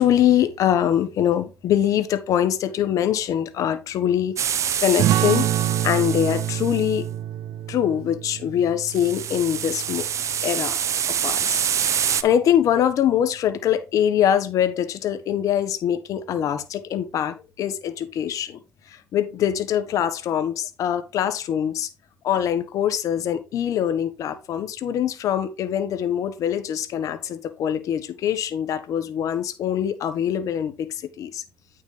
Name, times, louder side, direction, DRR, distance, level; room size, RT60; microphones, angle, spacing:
voice 1, 0.0-4.3 4.8-5.5 5.8-7.0 7.7-10.1 10.4-10.8 11.1-18.6 18.9-21.9 22.2-31.4, left 10 dB, 75° left, 1.3 m, -23 dB
sound 1, 4.4-6.9 8.9-12.2, right 9 dB, 60° right, 0.8 m, -26 dB
sound 2, 5.0-10.2, right 12 dB, 80° right, 0.4 m, -27 dB
9.2 x 6.3 x 3.3 m
supercardioid pair, 75°, 6 cm